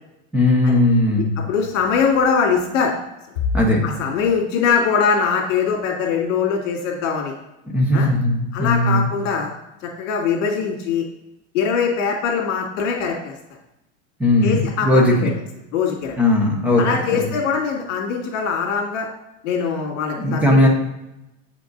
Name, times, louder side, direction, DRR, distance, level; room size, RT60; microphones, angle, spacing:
voice 1, 0.3-1.3 3.5-3.9 7.7-9.1 14.2-15.3 16.2-17.2 20.2-20.7, left 1 dB, 5° right, -1 dB, 0.5 m, -17 dB
voice 2, 1.5-2.9 3.8-7.3 7.9-8.1 8.5-9.5 10.0-11.0 11.5-13.3 14.4-15.3 15.7-16.2 16.8-19.1 19.4-20.7, left 6 dB, 70° left, -1 dB, 2.1 m, -22 dB
8.4 x 5.2 x 3.9 m, 0.89 s
supercardioid pair, 175°, 39 cm